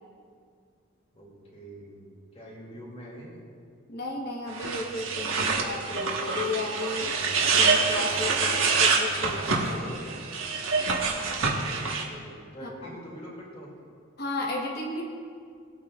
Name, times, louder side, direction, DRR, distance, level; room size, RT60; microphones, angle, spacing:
voice 1, 1.1-2.0 2.3-3.4 11.7-13.8, equal, 30° left, -4 dB, 2.5 m, -44 dB
voice 2, 3.9-7.2 7.5-10.2 14.2-15.0, left 2 dB, 45° left, -2 dB, 1.2 m, -34 dB
sound 1, 4.5-12.0, right 4 dB, 80° right, 1.3 m, -26 dB
20.0 x 8.5 x 2.4 m, 2.2 s
head